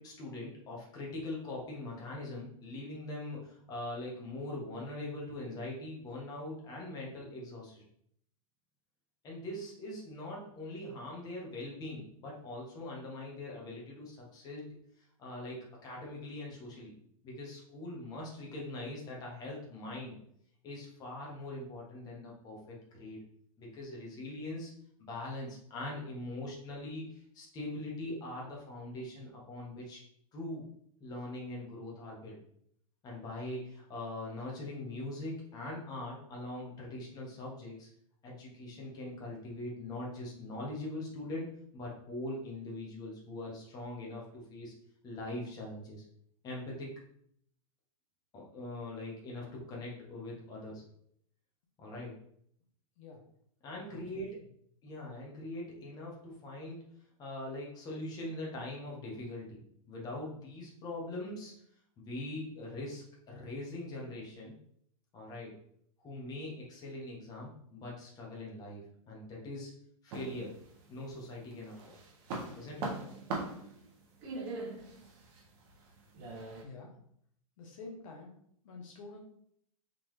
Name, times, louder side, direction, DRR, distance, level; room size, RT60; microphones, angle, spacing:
voice 1, 0.0-7.8 9.2-14.8 15.2-16.9 17.2-20.2 20.6-23.2 23.6-24.7 25.0-30.0 30.3-30.6 31.0-32.4 33.0-37.9 38.2-44.7 45.0-46.0 46.4-47.0 48.3-50.8 51.8-52.2 53.6-54.3 54.8-56.8 57.2-59.6 59.9-61.5 62.0-64.5 65.1-65.6 66.0-69.7 70.0-70.5 70.9-72.0 72.5-72.9, left 1 dB, 20° left, -3 dB, 1.2 m, -42 dB
voice 2, 53.9-54.2 76.6-77.0 77.6-78.4 78.6-79.2, left 3 dB, 65° left, 1 dB, 1.0 m, -48 dB
sound 1, 70.1-71.1 71.5-76.6, right 2 dB, 40° right, 1.1 m, -41 dB
3.9 x 3.3 x 3.2 m, 0.68 s
hypercardioid pair, 150°, 18 cm